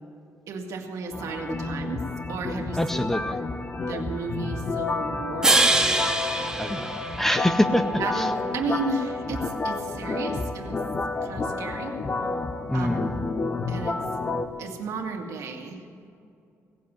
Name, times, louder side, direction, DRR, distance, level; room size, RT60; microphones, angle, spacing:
voice 1, 0.5-2.0 2.3-2.8 3.0-3.1 3.8-5.6 8.0-10.7 11.2-11.9 12.7-13.1 13.7-14.0 14.6-15.8, right 4 dB, 75° right, 2 dB, 2.1 m, -33 dB
sound 1, 1.1-14.5, left 3 dB, 30° left, 0.9 m, -30 dB
voice 2, 2.8-3.4 6.6-8.3 12.7-13.1, left 1 dB, 5° left, 9 dB, 0.6 m, -25 dB
sound 2, 5.4-7.8, right 2 dB, 10° right, 1.0 m, -24 dB
17.5 x 7.8 x 8.4 m, 2.4 s
cardioid pair, 130°, 6 cm